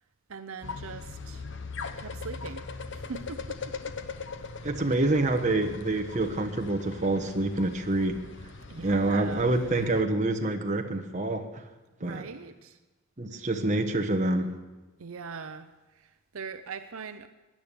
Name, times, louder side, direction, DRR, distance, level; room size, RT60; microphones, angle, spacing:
voice 1, 0.3-1.4 2.0-2.6 2.9-3.7 8.7-9.5 12.0-12.8 15.0-17.3, right 5 dB, 70° right, 9 dB, 0.6 m, -41 dB
sound 1, 0.6-10.0, left 4 dB, 55° left, 0.9 m, -40 dB
voice 2, 4.6-8.2 8.8-11.6 12.0-12.3 13.2-14.6, right 2 dB, 35° right, 4 dB, 1.2 m, -27 dB
16.5 x 10.5 x 6.8 m, 1.1 s
head